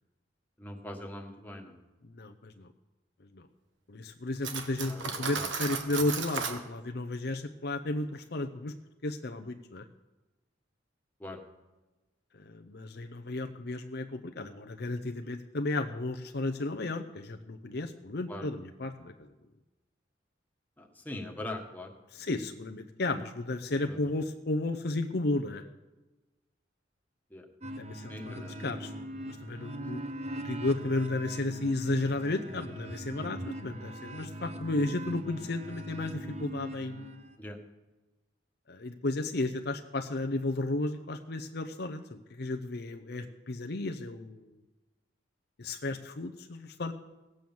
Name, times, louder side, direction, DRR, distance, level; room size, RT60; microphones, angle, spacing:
voice 1, 0.6-1.8 4.9-5.5 11.2-11.4 18.3-18.5 20.8-22.3 23.8-24.0 27.3-27.4 28.1-28.8 29.8-29.9 37.4-37.6, left 1 dB, 10° left, 1 dB, 1.5 m, -42 dB
voice 2, 2.0-2.7 3.3-3.5 3.9-8.7 9.0-9.8 12.3-19.3 22.1-25.6 27.8-30.0 30.3-37.2 38.7-44.6 45.6-46.9, left 2 dB, 60° left, 6 dB, 0.7 m, -33 dB
Cutlery silverware, 4.4-6.6, right 5 dB, 90° right, 1.4 m, -35 dB
sound 1, 27.6-37.3, right 1 dB, 35° right, 1.0 m, -41 dB
17.0 x 7.7 x 7.2 m, 1.1 s
head